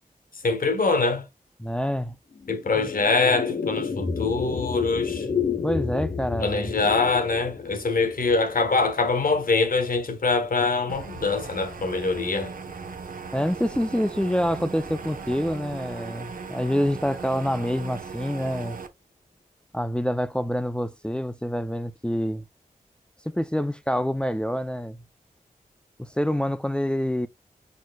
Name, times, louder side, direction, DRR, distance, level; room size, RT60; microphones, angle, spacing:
voice 1, 0.4-1.3 2.5-5.3 6.4-12.5, left 3 dB, 75° left, 1.3 m, -24 dB
voice 2, 1.6-2.2 2.7-2.9 5.6-6.8 13.3-18.8 19.7-22.4 23.3-25.0 26.0-27.3, equal, 5° left, 0.5 m, -26 dB
sound 1, 2.3-12.8, left 6 dB, 45° left, 0.9 m, -32 dB
sound 2, 10.9-18.9, right 5 dB, 75° right, 0.9 m, -38 dB
4.5 x 4.4 x 2.3 m
wide cardioid pair, 65°, 15 cm